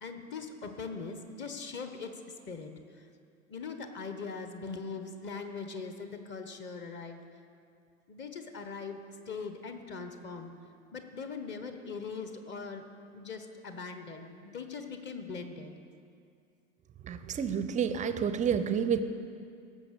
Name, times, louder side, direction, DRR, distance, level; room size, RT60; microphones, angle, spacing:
voice 1, 0.0-2.1 2.5-3.1 3.5-7.2 8.1-9.0 9.3-10.5 10.9-12.8 13.1-15.7, left 4 dB, 25° left, 7 dB, 1.2 m, -41 dB
voice 2, 17.0-19.0, right 7 dB, 20° right, 11 dB, 0.6 m, -29 dB
17.0 x 6.8 x 6.7 m, 2.4 s
figure-of-eight pair, 80°, 40 cm